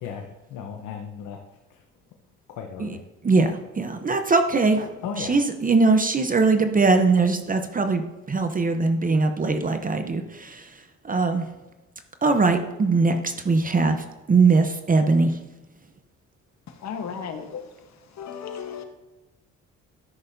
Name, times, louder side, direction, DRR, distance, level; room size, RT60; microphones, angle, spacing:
voice 1, 0.0-1.4 2.5-3.0 5.0-5.3, left 6 dB, 90° left, 0.9 m, -35 dB
voice 2, 3.2-4.9 5.2-10.6 11.1-11.4 12.2-15.3, right 3 dB, 30° right, 0.8 m, -21 dB
voice 3, 16.8-17.6 18.2-18.8, left 7 dB, 65° left, 1.3 m, -34 dB
12.5 x 6.4 x 2.7 m
cardioid pair, 90°, 30 cm